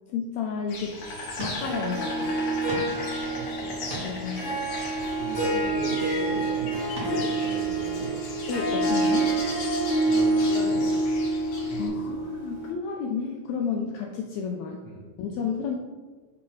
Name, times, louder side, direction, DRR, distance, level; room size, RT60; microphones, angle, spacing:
voice 1, 0.1-1.0 1.4-2.3 4.0-4.4 8.5-9.4 11.8-14.8 15.2-15.8, left 6 dB, 85° left, 1 dB, 1.6 m, -31 dB
Insect, 0.7-11.9, left 3 dB, 65° left, 2.4 m, -38 dB
sound 1, 1.4-1.7 2.1-2.2 2.7-3.0 3.6-4.3 5.4-6.0 7.0-7.2 7.7-7.8, right 1 dB, 60° right, 0.7 m, -38 dB
Harp, 1.6-12.7, right 2 dB, 45° left, 0.9 m, -27 dB
voice 2, 3.4-3.8 4.8-8.1 10.1-10.9 11.6-12.2 14.8-15.0, right 2 dB, 75° right, -4 dB, 1.3 m, -37 dB
6.5 x 2.9 x 5.5 m, 1.3 s
omnidirectional pair, 3.7 m